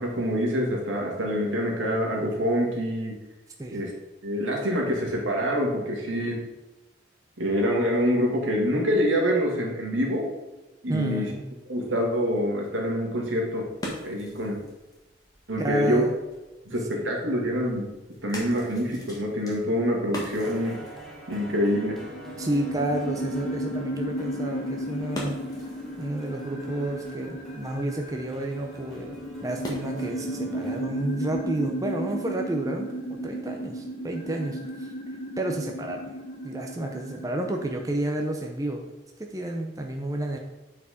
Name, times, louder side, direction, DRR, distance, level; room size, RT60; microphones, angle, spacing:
voice 1, 0.0-3.1 3.7-3.9 4.2-6.4 7.4-10.3 10.8-11.3 11.7-13.7 14.0-14.6 15.5-16.0 16.7-17.9 18.2-20.8 21.3-22.0, equal, 80° right, 0 dB, 2.0 m, -26 dB
voice 2, 10.9-11.4 15.6-16.1 16.9-17.1 22.4-25.4 26.0-34.9 35.4-36.1 36.4-38.9 39.2-40.4, right 1 dB, 15° right, 2 dB, 0.6 m, -31 dB
sound 1, 13.2-30.4, equal, 20° left, 1.6 m, -44 dB
sound 2, 20.4-30.8, right 1 dB, ahead, 1.1 m, -44 dB
sound 3, 21.5-37.8, equal, 40° left, 1.4 m, -34 dB
8.1 x 4.7 x 4.9 m, 1.1 s
head